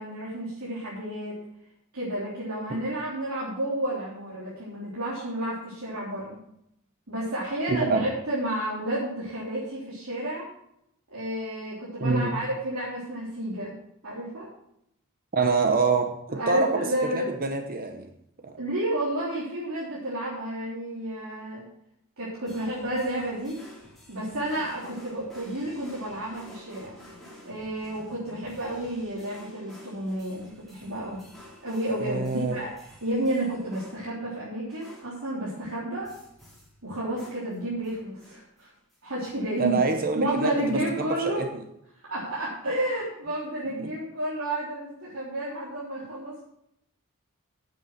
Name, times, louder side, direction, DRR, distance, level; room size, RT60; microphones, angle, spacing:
voice 1, 0.0-1.4 1.9-6.4 7.1-10.5 11.1-13.7 14.0-14.5 16.3-17.3 18.6-21.6 22.2-23.6 24.1-26.9 27.4-31.2 31.6-36.1 36.8-38.7 39.0-39.8 40.1-41.5 42.1-46.4, right 1 dB, 75° right, 3.7 m, -31 dB
voice 2, 7.7-8.1 12.0-12.4 15.3-18.1 18.4-18.5 32.0-32.6 39.6-41.5 43.8-43.9, right 4 dB, 40° right, 0.8 m, -26 dB
sound 1, 22.5-34.3 34.7-35.2 36.0-36.8 37.2-39.0 39.2-40.1 40.4-41.0, left 1 dB, ahead, 3.9 m, -51 dB
9.9 x 7.9 x 6.4 m
head